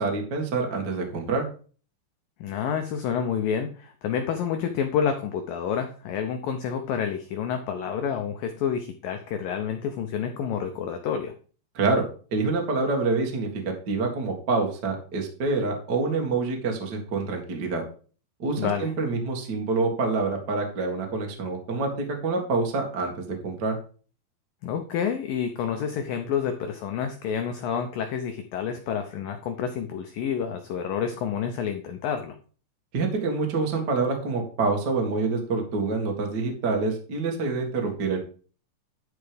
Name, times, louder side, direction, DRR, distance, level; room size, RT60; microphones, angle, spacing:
voice 1, 0.0-1.4 11.7-12.0 12.3-17.8 18.4-23.8 32.9-38.2, right 3 dB, 50° right, 2 dB, 1.2 m, -26 dB
voice 2, 2.4-11.3 18.6-18.9 24.6-32.4, left 7 dB, 85° left, 6 dB, 2.0 m, -29 dB
11.5 x 4.7 x 5.0 m, 0.40 s
omnidirectional pair, 5.2 m